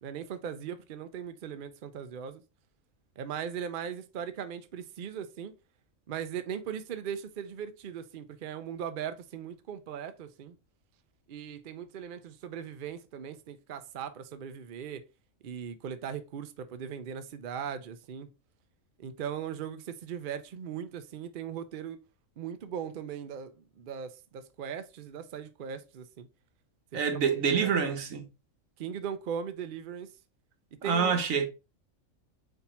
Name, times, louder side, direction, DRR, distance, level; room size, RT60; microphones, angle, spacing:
voice 1, 0.0-2.4 3.2-5.5 6.1-10.6 11.3-15.0 15.4-18.3 19.0-22.0 22.4-26.3 27.5-27.7 28.8-30.1 30.8-31.2, right 8 dB, 55° right, 0.6 m, -39 dB
voice 2, 26.9-28.3 30.8-31.5, right 6 dB, 80° right, 1.3 m, -27 dB
4.3 x 2.7 x 4.2 m
omnidirectional pair, 1.4 m